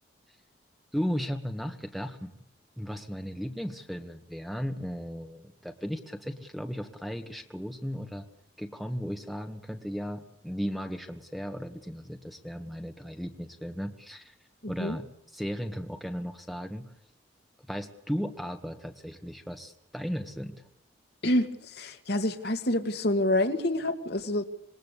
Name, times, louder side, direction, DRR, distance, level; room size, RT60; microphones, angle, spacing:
voice 1, 0.9-2.3 2.8-8.2 8.6-14.3 14.7-16.9 17.7-20.6, equal, ahead, 6 dB, 1.6 m, -36 dB
voice 2, 14.6-15.0 21.2-21.5 21.7-24.5, left 1 dB, 55° left, 6 dB, 2.3 m, -27 dB
26.5 x 21.5 x 8.4 m, 0.77 s
head